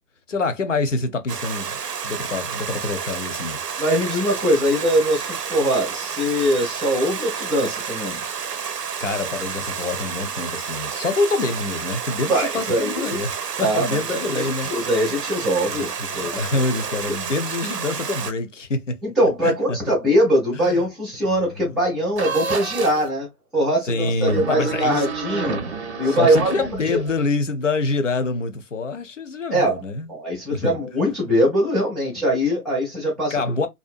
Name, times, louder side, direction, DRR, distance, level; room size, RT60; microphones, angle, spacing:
voice 1, 0.3-1.8 2.0-3.6 9.0-14.9 15.6-19.0 19.4-19.8 20.5-20.8 21.3-21.4 23.9-25.1 26.0-30.1 30.5-30.7 33.3-33.7, left 3 dB, 55° left, 0.6 m, -26 dB
Stream, 1.3-18.3, right 6 dB, 85° right, 0.6 m, -30 dB
voice 2, 3.8-8.2 12.3-13.2 13.6-17.0 19.0-25.6 26.0-26.5 26.9-27.0 29.5-29.8 30.1-33.3, equal, ahead, 0.4 m, -22 dB
sound 1, 22.2-23.1 24.2-27.3, right 5 dB, 45° right, 0.6 m, -29 dB
2.6 x 2.2 x 2.4 m
figure-of-eight pair, 140°, 47 cm